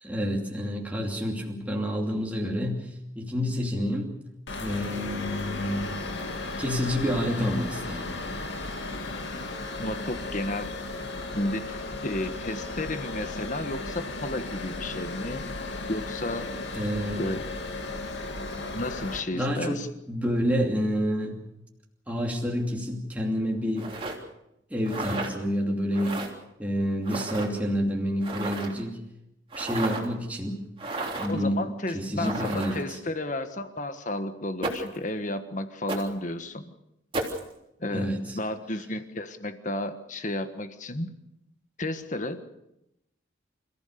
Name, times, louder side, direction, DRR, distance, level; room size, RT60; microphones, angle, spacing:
voice 1, 0.0-4.1 4.6-6.0 6.6-8.2 16.7-17.2 19.3-21.4 22.1-23.9 24.7-26.2 26.6-29.0 29.6-30.7 31.2-31.6 31.9-32.9 37.9-38.4, equal, 5° right, -1 dB, 2.8 m, -28 dB
sound 1, 4.5-19.2, left 2 dB, 65° left, 2.4 m, -35 dB
voice 2, 9.8-10.7 11.3-15.4 15.9-16.8 17.2-17.4 18.7-19.9 31.3-36.7 37.8-38.1 38.3-41.1 41.8-42.4, left 1 dB, 40° left, 9 dB, 1.5 m, -32 dB
sound 2, 23.8-24.1 24.8-25.3 25.9-26.3 27.0-27.5 28.2-28.8 29.5-30.1 30.8-31.4 32.2-32.9 34.6-35.0 35.9-36.1 37.1-37.4, right 2 dB, 25° right, 3.4 m, -33 dB
28.5 x 15.5 x 6.8 m, 0.86 s
head